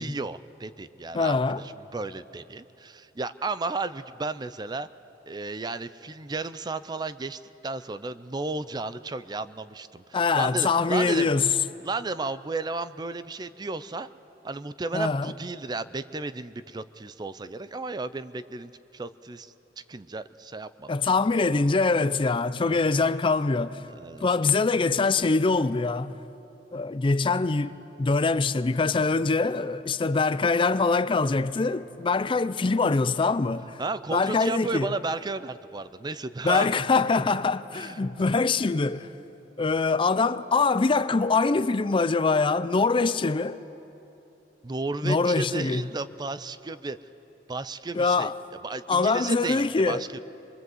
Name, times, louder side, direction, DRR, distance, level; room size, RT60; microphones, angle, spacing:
voice 1, 0.0-4.9 5.3-11.3 11.8-14.1 14.4-19.5 19.9-20.9 22.7-23.1 23.9-24.5 33.8-37.0 37.7-38.3 44.6-47.0 47.5-48.3 48.6-50.2, right 3 dB, 25° right, 0.5 m, -34 dB
voice 2, 1.1-1.6 10.1-11.5 14.9-15.3 20.9-23.8 24.2-26.2 26.7-33.8 34.1-34.9 36.4-39.1 39.6-43.6 45.0-45.9 47.9-48.4 48.9-50.0, left 4 dB, 30° left, 0.4 m, -24 dB
23.5 x 23.0 x 7.8 m
head